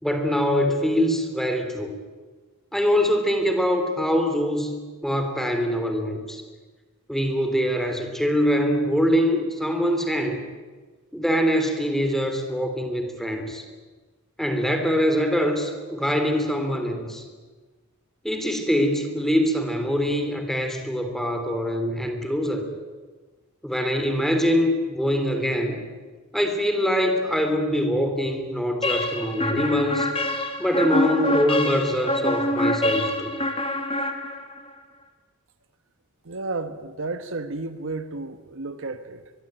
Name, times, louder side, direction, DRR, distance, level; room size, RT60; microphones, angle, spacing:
voice 1, 0.0-1.9 2.7-4.8 5.0-6.4 7.1-10.4 11.1-13.6 14.4-17.2 18.2-22.7 23.6-25.8 26.3-30.1 30.6-33.3, equal, ahead, 6 dB, 3.4 m, -24 dB
sound 1, 28.8-34.7, left 1 dB, 25° left, 2.3 m, -25 dB
voice 2, 36.2-39.3, right 3 dB, 65° right, 9 dB, 1.3 m, -32 dB
23.0 x 23.0 x 9.0 m, 1.4 s
head